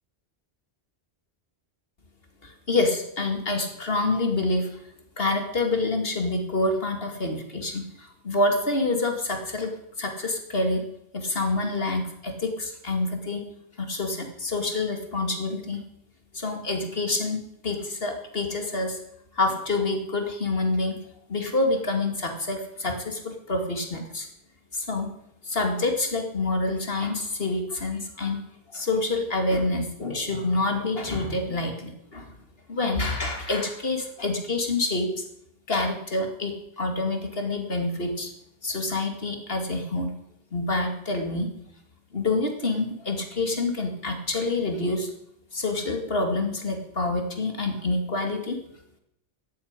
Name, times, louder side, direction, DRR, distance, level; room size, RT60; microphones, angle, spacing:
voice 1, 2.4-4.8 5.2-9.7 10.0-10.8 11.1-13.4 13.8-15.8 16.3-19.0 19.3-21.0 21.3-24.3 24.7-25.1 25.4-28.4 28.7-32.3 32.7-35.2 35.7-38.3 38.6-40.1 40.5-41.5 42.1-45.1 45.5-48.6, left 2 dB, 60° left, 4 dB, 2.8 m, -27 dB
14.5 x 9.2 x 9.7 m, 0.78 s
omnidirectional pair, 1.1 m